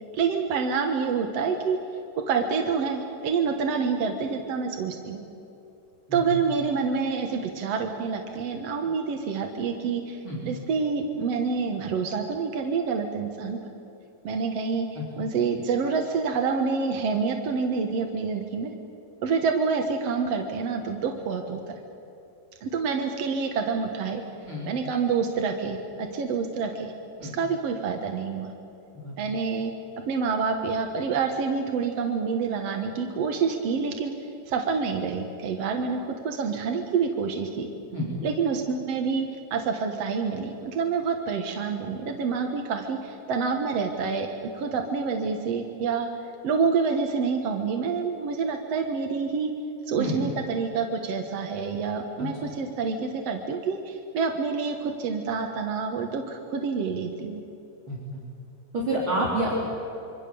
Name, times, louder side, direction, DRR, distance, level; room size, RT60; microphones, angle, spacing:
voice 1, 0.1-1.8 2.3-5.2 6.1-13.6 14.2-18.7 19.2-21.6 22.6-24.2 24.6-26.9 27.2-28.5 29.2-34.1 34.5-37.7 38.2-44.3 44.5-46.1 46.4-49.5 49.9-57.4, right 5 dB, 60° right, 3 dB, 1.6 m, -27 dB
voice 2, 15.0-15.3 24.4-24.7 27.2-27.4 28.9-29.1 37.9-38.1 50.0-50.2 52.2-52.5 57.9-58.0 58.7-59.5, right 1 dB, 30° right, -4 dB, 3.9 m, -29 dB
26.0 x 25.0 x 7.0 m, 2.8 s
omnidirectional pair, 4.9 m